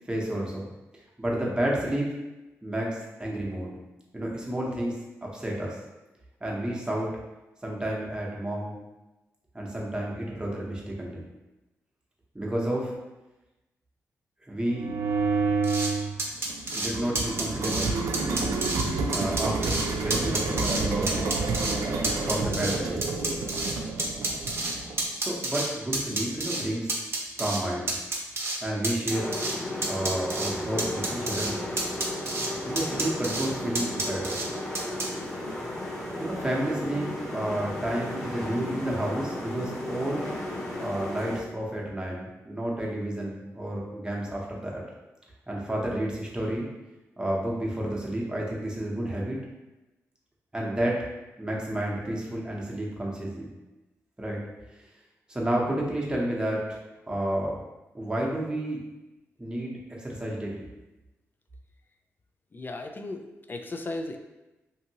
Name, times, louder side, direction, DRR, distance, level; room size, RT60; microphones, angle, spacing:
voice 1, 0.1-0.6 0.9-2.2 2.6-3.7 4.1-4.9 5.2-5.8 6.4-7.1 7.6-8.8 9.5-11.2 12.3-12.9 14.5-14.9 16.7-18.0 19.1-21.4 22.2-23.0 25.1-26.9 27.4-27.9 28.6-29.3 29.8-31.6 32.7-34.4 36.2-40.3 40.8-44.8 45.5-46.7 47.2-49.4 50.5-51.0 51.4-53.5 54.2-54.4 54.8-54.9 55.3-56.8 57.1-57.6 57.9-58.8 59.4-60.6, right 1 dB, 15° right, -3 dB, 0.8 m, -30 dB
sound 1, 14.7-16.1 16.5-25.0, right 3 dB, 85° right, 0.3 m, -29 dB
sound 2, 15.6-15.9 16.2-16.9 17.2-17.9 18.1-18.8 19.1-19.8 20.1-20.8 21.1-21.7 22.0-23.7 24.0-25.7 25.9-26.6 26.9-27.6 27.9-28.6 28.8-29.6 29.8-30.5 30.8-31.5 31.8-32.5 32.8-33.5 33.7-34.5 34.7-35.1, right 2 dB, 45° right, 0.7 m, -29 dB
sound 3, 29.1-41.4, left 1 dB, 70° left, 0.9 m, -34 dB
voice 2, 62.5-64.2, left 2 dB, 35° left, 5 dB, 0.4 m, -36 dB
2.7 x 2.5 x 2.8 m, 1.0 s
cardioid pair, 55°, 6 cm